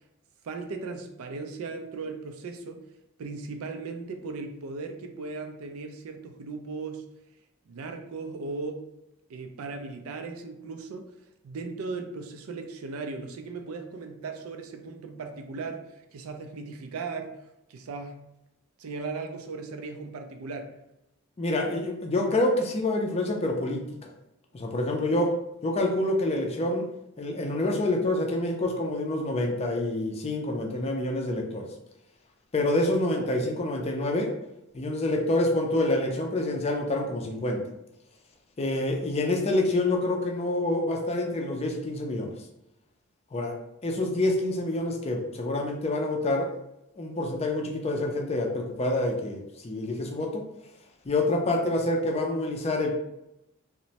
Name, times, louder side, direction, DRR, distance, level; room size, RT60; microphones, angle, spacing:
voice 1, 0.4-2.8 3.2-7.0 7.7-8.9 9.3-11.1 11.4-15.8 16.1-17.3 17.7-18.2 18.8-20.7 33.2-33.3, right 4 dB, 70° right, 5 dB, 0.4 m, -37 dB
voice 2, 21.4-24.1 24.5-25.3 25.6-26.8 27.2-31.7 32.5-34.3 34.7-37.6 38.6-42.3 43.3-43.5 43.8-46.5 47.0-50.4 51.0-52.9, left 2 dB, 30° left, 1 dB, 0.4 m, -27 dB
3.0 x 2.1 x 2.7 m, 0.87 s
head